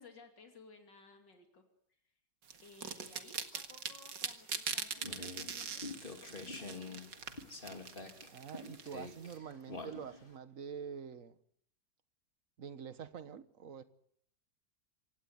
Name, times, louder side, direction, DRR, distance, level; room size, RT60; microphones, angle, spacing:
voice 1, 0.0-1.6 1.9-2.2 2.6-5.8 6.2-7.0, left 4 dB, 85° left, 3.4 m, -59 dB
sound 1, 2.5-9.3, right 6 dB, 85° right, 2.4 m, -42 dB
sound 2, 5.0-10.4, left 3 dB, 30° left, 3.1 m, -47 dB
voice 2, 8.3-11.4 12.6-13.8, right 7 dB, 50° right, 1.6 m, -46 dB
26.0 x 17.5 x 9.6 m
omnidirectional pair, 1.9 m